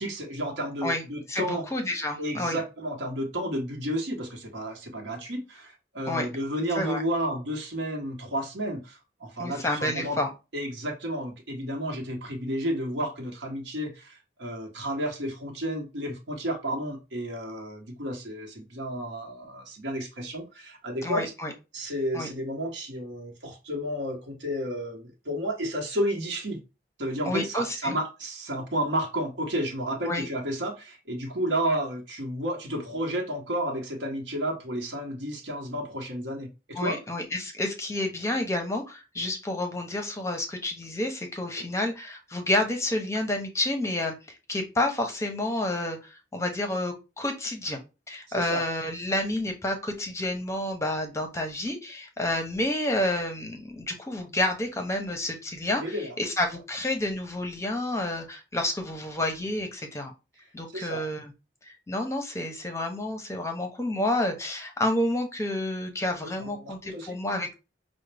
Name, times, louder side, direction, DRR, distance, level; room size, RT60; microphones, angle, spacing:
voice 1, 0.0-1.7 2.2-10.2 10.5-21.2 21.7-26.6 27.0-37.0 41.6-41.7 48.4-48.7 55.8-56.2 60.7-61.0 66.2-67.2, equal, 80° right, 1.0 m, -32 dB
voice 2, 1.3-2.6 6.1-6.3 6.8-7.0 9.4-10.3 21.0-21.5 22.1-22.3 27.3-28.0 30.1-30.2 36.8-44.1 44.5-47.8 48.1-60.1 60.5-61.3 61.6-67.5, left 1 dB, 15° left, 0.6 m, -29 dB
4.9 x 2.1 x 3.3 m
head